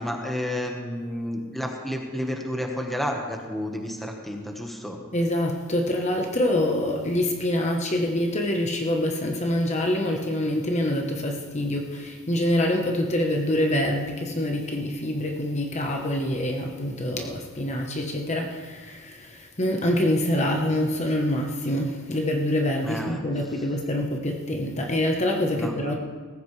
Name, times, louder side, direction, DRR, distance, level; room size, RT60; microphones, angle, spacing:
voice 1, 0.0-5.0 22.8-23.2 25.5-25.8, equal, ahead, 1 dB, 1.4 m, -31 dB
voice 2, 5.1-25.9, left 1 dB, 35° left, 2 dB, 1.1 m, -25 dB
18.0 x 15.5 x 3.3 m, 1.5 s
head